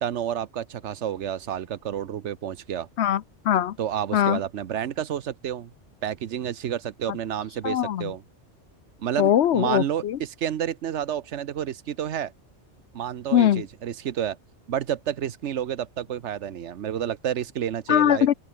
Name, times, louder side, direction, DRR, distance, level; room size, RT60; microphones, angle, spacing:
voice 1, 0.0-2.9 3.8-5.7 6.0-8.2 9.0-12.3 12.9-14.4 14.7-18.3, right 10 dB, 80° right, 1.2 m, -30 dB
voice 2, 3.0-3.7 4.1-4.4 7.6-8.1 9.2-10.2 13.3-13.6 17.9-18.3, left 10 dB, 70° left, 1.0 m, -21 dB
open air
omnidirectional pair, 1.2 m